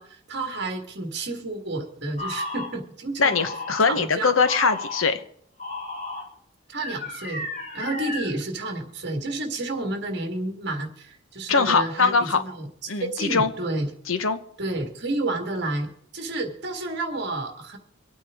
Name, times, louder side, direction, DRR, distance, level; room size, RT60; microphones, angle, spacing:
voice 1, 0.0-3.4 3.9-4.4 6.7-7.4 7.7-13.9 14.6-17.8, right 2 dB, 55° right, 4 dB, 1.8 m, -30 dB
sound 1, 2.2-2.7 3.2-3.8 4.4-5.0 5.6-6.2 6.8-8.3, left 2 dB, 35° left, 2.9 m, -33 dB
voice 2, 3.2-5.2 11.5-12.4 12.9-13.5 14.1-14.4, left 5 dB, 80° left, 10 dB, 1.0 m, -22 dB
24.5 x 8.8 x 3.6 m, 0.68 s
head